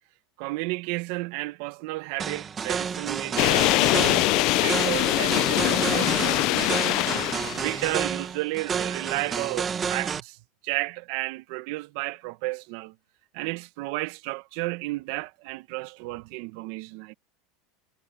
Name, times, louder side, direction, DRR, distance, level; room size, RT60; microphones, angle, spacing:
voice 1, 0.4-7.1 7.6-10.4 10.6-12.9 13.3-17.1, right 22 dB, 55° right, 1.0 m, -33 dB
sound 1, 2.2-10.2, right 6 dB, 20° right, 1.4 m, -30 dB
sound 2, 3.4-8.0, left 21 dB, 45° left, 0.5 m, -23 dB
supercardioid pair, 160°, 0 cm